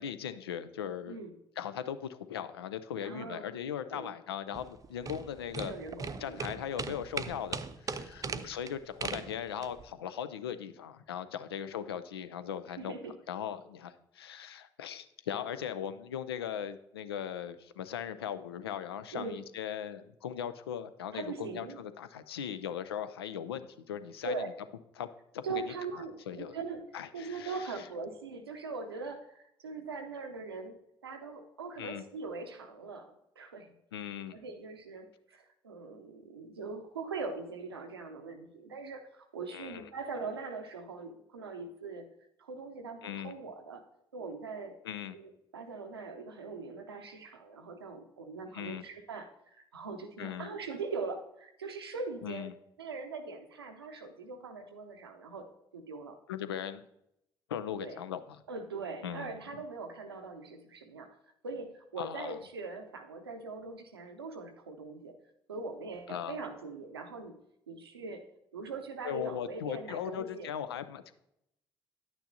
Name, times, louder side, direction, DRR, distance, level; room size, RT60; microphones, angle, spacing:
voice 1, 0.0-1.2 1.6-5.7 6.2-13.0 13.3-24.3 25.0-25.1 25.3-25.7 26.3-26.6 26.9-27.7 31.8-32.0 33.9-34.4 39.5-39.9 43.0-43.3 44.8-45.2 48.5-48.8 50.2-50.5 52.2-52.5 56.3-56.8 57.5-58.4 59.0-59.6 62.0-62.4 66.1-66.4 69.0-71.1, left 9 dB, 80° left, 12 dB, 0.4 m, -39 dB
voice 2, 1.0-1.3 3.0-3.5 3.9-4.1 5.6-6.5 8.3-8.5 12.8-13.2 19.1-19.4 21.1-21.8 24.2-24.5 25.4-33.7 34.3-42.1 42.4-43.8 44.1-44.8 45.1-49.3 49.7-52.5 52.8-56.2 57.8-58.0 58.5-61.1 61.4-65.2 65.5-68.3 68.5-70.5, right 4 dB, 85° right, 6 dB, 0.7 m, -41 dB
sound 1, 4.5-9.9, right 5 dB, 25° right, 0.5 m, -39 dB
10.5 x 9.1 x 2.7 m, 0.79 s
figure-of-eight pair, 45°, 13 cm